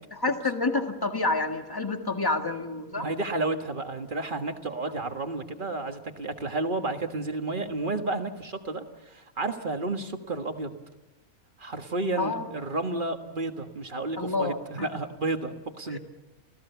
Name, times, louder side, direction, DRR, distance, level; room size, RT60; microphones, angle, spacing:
voice 1, 0.1-3.1 12.2-12.5 14.2-14.9 15.9-16.0, left 3 dB, 15° left, 5 dB, 1.7 m, -28 dB
voice 2, 3.0-10.7 11.6-16.0, right 2 dB, 35° right, 5 dB, 1.7 m, -31 dB
28.0 x 15.5 x 7.0 m, 1.1 s
omnidirectional pair, 1.5 m